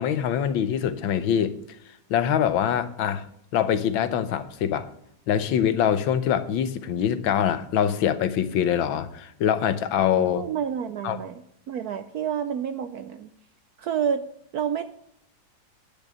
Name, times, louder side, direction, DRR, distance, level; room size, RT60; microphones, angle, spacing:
voice 1, 0.0-1.6 2.1-3.3 3.5-4.9 5.3-10.5 11.0-11.2, left 9 dB, 80° left, 12 dB, 1.6 m, -24 dB
voice 2, 10.3-11.4 11.7-13.3 13.8-14.2 14.5-14.9, right 8 dB, 70° right, 10 dB, 0.9 m, -29 dB
10.5 x 7.0 x 8.5 m, 0.72 s
omnidirectional pair, 2.2 m